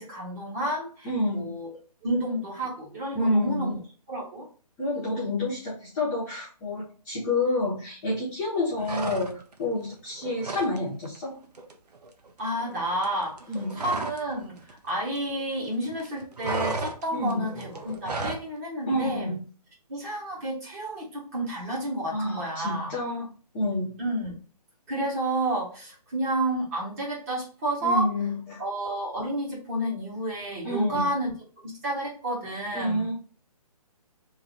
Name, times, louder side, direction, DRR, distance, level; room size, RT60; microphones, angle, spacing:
voice 1, 0.0-1.7 2.0-3.8 4.1-4.4 12.4-19.3 19.9-22.9 24.0-24.3 24.9-28.1 28.6-31.3 31.8-33.1, right 1 dB, 25° right, -5 dB, 1.7 m, -30 dB
voice 2, 1.0-1.6 3.1-3.7 4.8-11.4 13.5-13.7 17.1-17.5 18.9-19.4 22.1-23.3 23.5-24.0 27.8-28.6 30.6-31.1 32.7-33.1, left 1 dB, 15° left, -8 dB, 1.0 m, -28 dB
sound 1, 8.8-9.6 9.9-10.8 11.0-11.3 11.5-14.3 14.6-15.7 15.9-18.5, right 3 dB, 85° right, 0.9 m, -34 dB
3.2 x 2.9 x 3.8 m, 0.38 s
hypercardioid pair, 165°, 20 cm